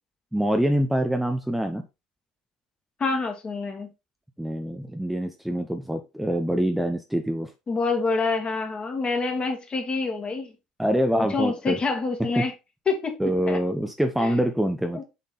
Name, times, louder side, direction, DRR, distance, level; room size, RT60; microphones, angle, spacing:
voice 1, 0.3-1.8 4.4-7.5 10.8-11.8 12.2-12.4 13.2-15.0, equal, 5° right, 0.8 m, -25 dB
voice 2, 3.0-3.9 7.7-10.5 11.1-12.5 12.9-13.2 13.5-13.6 14.2-14.4 14.9-15.0, left 4 dB, 35° left, 2.0 m, -27 dB
7.5 x 3.8 x 3.9 m
hypercardioid pair, 65°, 3 cm